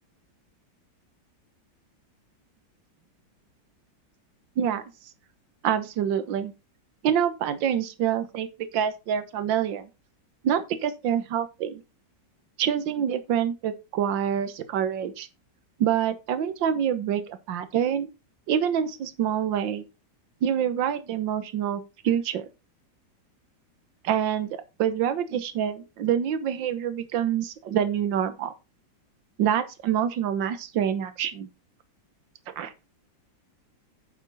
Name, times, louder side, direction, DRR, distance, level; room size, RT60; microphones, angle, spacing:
voice 1, 5.6-6.5 7.0-8.5 8.7-9.9 10.4-11.8 12.6-15.3 15.8-18.1 18.5-19.8 20.4-22.5 24.0-28.5 29.4-31.5 32.6-32.7, right 9 dB, 80° right, 1.8 m, -26 dB
9.4 x 7.0 x 4.0 m
omnidirectional pair, 2.1 m